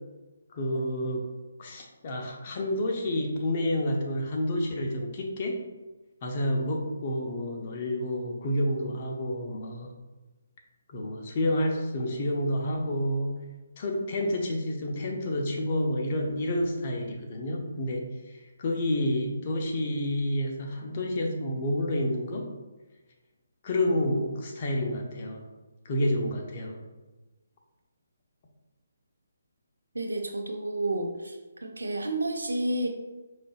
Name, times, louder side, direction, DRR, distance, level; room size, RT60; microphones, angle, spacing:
voice 1, 0.5-1.2 1.6-5.6 6.2-9.9 10.9-13.4 13.8-18.1 18.6-22.5 23.6-25.4 25.8-26.8, left 1 dB, 40° left, 1 dB, 0.8 m, -29 dB
voice 2, 29.9-32.9, right 2 dB, 90° right, 4 dB, 0.7 m, -30 dB
5.1 x 3.8 x 2.4 m, 1.1 s
figure-of-eight pair, 150°, 0 cm